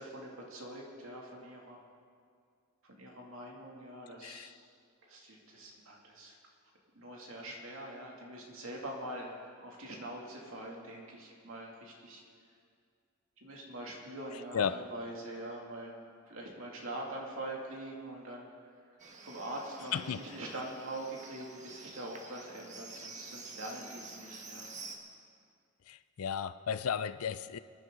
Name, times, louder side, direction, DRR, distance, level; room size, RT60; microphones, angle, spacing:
voice 1, 0.0-1.8 2.8-4.5 5.1-6.4 6.9-9.3 9.6-12.2 13.4-18.5 19.2-24.7, right 1 dB, 70° right, -1 dB, 2.5 m, -44 dB
Livestock farm animals working animals, 19.0-25.0, right 3 dB, 35° right, 1.3 m, -49 dB
voice 2, 25.9-27.6, left 7 dB, 80° left, 14 dB, 0.4 m, -34 dB
24.0 x 10.5 x 3.9 m, 2.2 s
head